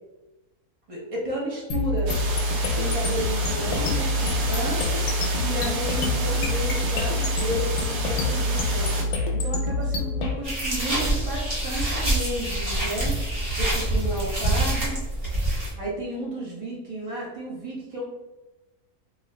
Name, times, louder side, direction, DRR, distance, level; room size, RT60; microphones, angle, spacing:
voice 1, 0.9-2.1 2.6-4.8 5.4-8.9 9.3-13.2 13.6-15.0 15.7-18.0, right 1 dB, 50° right, -5 dB, 0.4 m, -32 dB
sound 1, 1.7-10.3, left 2 dB, 75° left, 1.0 m, -26 dB
sound 2, 2.1-9.0, right 3 dB, 70° right, 1.0 m, -32 dB
sound 3, 10.4-15.7, right 1 dB, 35° right, 1.1 m, -26 dB
2.5 x 2.4 x 3.1 m, 1.1 s
omnidirectional pair, 1.7 m